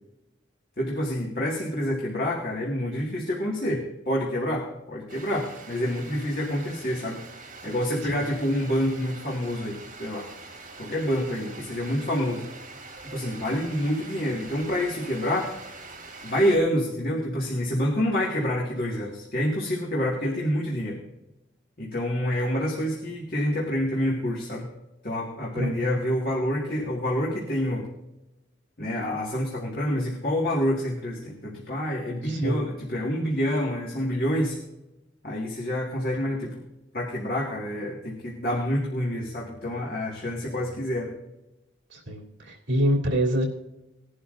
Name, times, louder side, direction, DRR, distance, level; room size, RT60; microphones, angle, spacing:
voice 1, 0.8-7.2 7.6-10.3 10.8-12.5 13.1-15.5 16.2-21.0 21.8-24.7 25.0-27.9 28.8-34.6 35.2-36.6 36.9-41.1, equal, 45° left, -3 dB, 1.9 m, -27 dB
sound 1, 5.1-16.6, right 3 dB, 45° right, 3.4 m, -44 dB
voice 2, 25.5-26.0 32.2-32.6 41.9-43.4, equal, 75° right, -1 dB, 3.2 m, -26 dB
20.0 x 11.0 x 2.6 m, 0.96 s
head